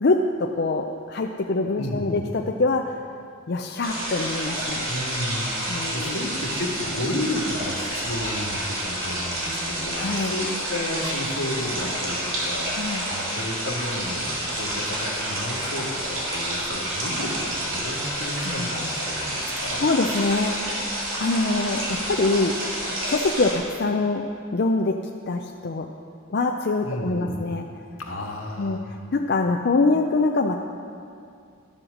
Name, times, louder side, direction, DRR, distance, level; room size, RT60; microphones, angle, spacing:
voice 1, 0.0-3.0 3.5-4.9 5.7-6.1 10.0-10.3 12.7-13.1 18.4-18.9 19.8-20.5 21.2-22.5 23.0-24.2 24.5-25.0 25.3-25.9 26.3-27.7 28.6-30.5, left 3 dB, 50° left, 2 dB, 0.5 m, -24 dB
voice 2, 1.8-2.3 4.9-19.8 26.8-27.4 28.0-28.9, left 1 dB, 85° left, 0 dB, 1.7 m, -32 dB
sound 1, 3.8-23.5, right 1 dB, 75° right, 3.3 m, -29 dB
12.0 x 7.8 x 6.4 m, 2.4 s
head